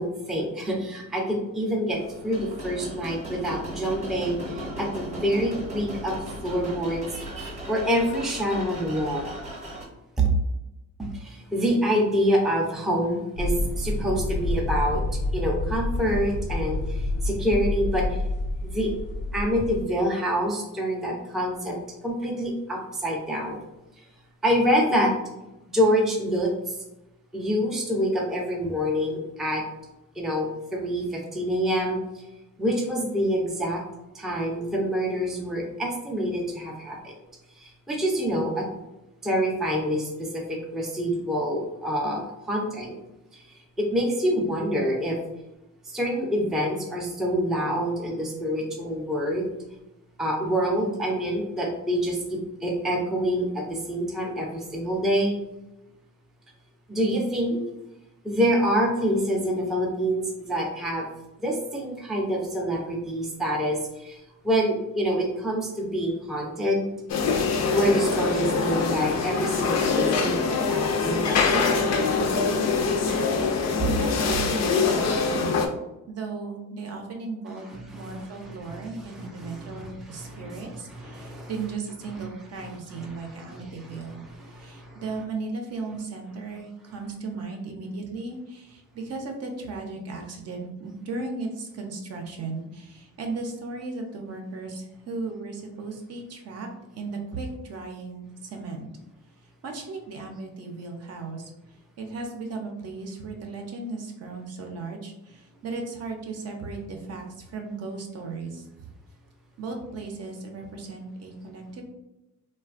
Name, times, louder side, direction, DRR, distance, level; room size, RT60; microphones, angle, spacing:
voice 1, 0.0-7.1 7.7-9.3 10.2-10.3 11.0-15.0 15.3-18.2 18.6-18.9 19.3-21.8 22.0-23.6 24.4-25.1 25.7-26.8 27.3-29.6 30.2-32.0 32.6-33.8 34.1-37.1 37.6-38.7 39.2-43.0 43.3-43.4 43.8-45.2 45.9-49.5 50.2-55.3 56.9-57.6 58.2-61.1 61.4-64.2 64.4-66.9 67.7-71.7 73.1-73.2 77.5-81.6 82.2-82.3 82.6-85.0, equal, ahead, -1 dB, 0.4 m, -27 dB
sound 1, 1.9-9.8, right 1 dB, 20° right, 0.8 m, -37 dB
sound 2, 13.4-19.8, left 1 dB, 90° left, 0.9 m, -28 dB
sound 3, 67.1-75.7, left 4 dB, 60° left, 0.4 m, -24 dB
voice 2, 73.8-75.7 76.1-84.2 84.6-96.7 97.0-98.9 99.6-101.5 102.0-108.6 109.6-111.8, right 3 dB, 55° right, 2 dB, 0.6 m, -36 dB
3.2 x 2.2 x 2.4 m, 0.95 s
cardioid pair, 145°, 31 cm